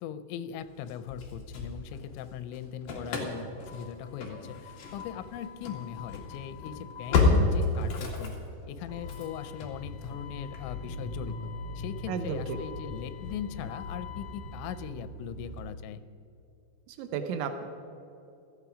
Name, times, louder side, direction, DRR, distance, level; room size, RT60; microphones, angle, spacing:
voice 1, 0.0-8.4 8.7-11.4 11.8-16.0, left 9 dB, 90° left, 12 dB, 3.1 m, -40 dB
Engine starting / Slam, 0.9-2.3 2.5-15.6, left 3 dB, 50° left, 3.1 m, -33 dB
voice 2, 12.1-12.6 16.9-17.6, right 7 dB, 90° right, 7 dB, 3.2 m, -33 dB
17.5 x 14.0 x 5.0 m, 2.8 s
omnidirectional pair, 5.2 m